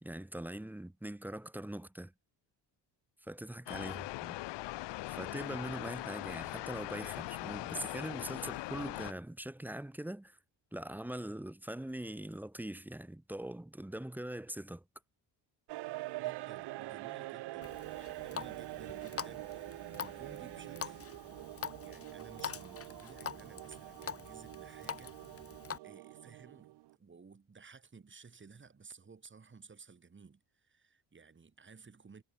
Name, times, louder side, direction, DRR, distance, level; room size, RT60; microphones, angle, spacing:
voice 1, 0.0-2.1 3.2-4.4 5.1-10.4 10.7-14.8, right 1 dB, 5° right, 0.9 m, -42 dB
sound 1, 3.7-9.1, left 18 dB, 75° left, 0.7 m, -41 dB
sound 2, 15.7-26.9, right 18 dB, 65° right, 0.6 m, -45 dB
voice 2, 16.2-19.7 20.0-21.0 21.8-25.2 25.8-32.2, right 5 dB, 25° right, 4.4 m, -56 dB
Water tap faucet, 17.6-25.8, left 7 dB, 30° left, 1.7 m, -45 dB
cardioid pair, 120°, 43 cm